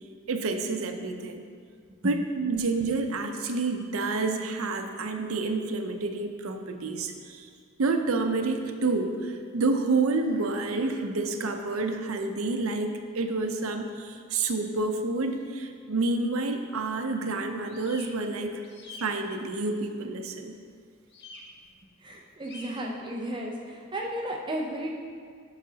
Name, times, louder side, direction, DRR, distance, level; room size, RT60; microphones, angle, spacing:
voice 1, 0.3-1.4 2.0-7.5 7.8-18.6 19.0-20.5, right 3 dB, 70° right, 6 dB, 0.6 m, -29 dB
sound 1, 17.6-18.1 18.6-19.0 21.1-21.4 22.4-22.7, left 3 dB, 55° left, 1.0 m, -45 dB
voice 2, 22.0-25.0, right 1 dB, 20° right, 0 dB, 0.5 m, -33 dB
12.5 x 4.9 x 2.8 m, 2.1 s
head